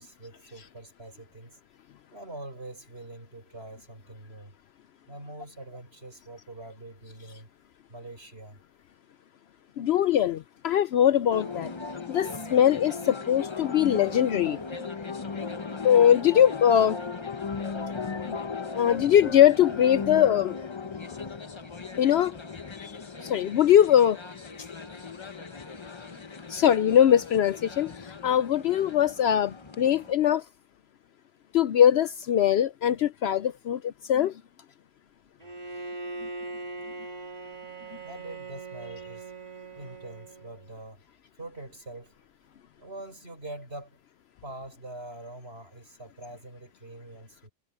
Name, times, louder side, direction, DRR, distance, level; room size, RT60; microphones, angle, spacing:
voice 1, 0.0-1.6 2.1-4.5 5.1-7.5 7.9-8.6 38.0-39.3 39.7-41.0 41.4-42.1 42.8-44.0 44.4-47.5, right 2 dB, 55° right, 6.8 m, -44 dB
voice 2, 9.8-11.7 12.1-14.9 15.8-17.0 18.3-18.4 18.7-20.6 22.0-22.4 22.8-23.0 23.2-24.2 26.5-27.9 28.2-30.4 31.5-34.3, left 10 dB, 65° left, 0.7 m, -22 dB
sound 1, 11.3-30.1, left 4 dB, 25° left, 0.8 m, -37 dB
Bowed string instrument, 35.4-40.8, right 3 dB, 30° right, 3.7 m, -40 dB
omnidirectional pair, 1.3 m